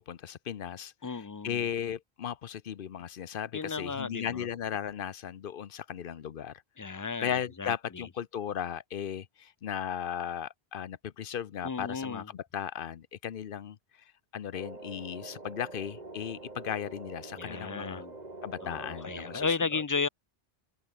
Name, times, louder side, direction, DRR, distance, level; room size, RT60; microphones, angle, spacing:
voice 1, 0.0-6.6 7.2-13.8 14.3-18.0 18.4-19.8, left 9 dB, 60° left, 0.9 m, -36 dB
voice 2, 1.0-1.7 3.5-4.5 6.8-7.3 7.6-8.0 11.6-12.3 17.4-18.1 18.6-20.1, left 4 dB, 35° left, 0.3 m, -34 dB
sound 1, 14.5-19.6, right 2 dB, 40° right, 2.6 m, -45 dB
open air
omnidirectional pair, 1.0 m